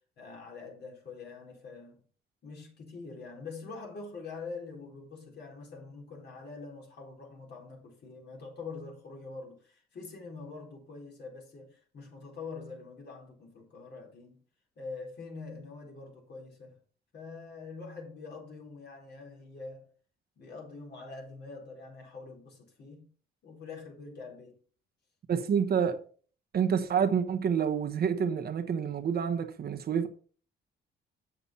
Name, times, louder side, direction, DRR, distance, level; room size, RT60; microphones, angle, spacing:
voice 1, 0.2-2.0 2.4-14.4 14.8-16.8 17.1-19.9 20.4-23.1 23.4-24.6, left 4 dB, 60° left, 4.1 m, -45 dB
voice 2, 25.3-26.0 26.5-30.1, right 7 dB, 50° right, 1.1 m, -28 dB
8.0 x 7.3 x 4.1 m
cardioid pair, 90°, 20 cm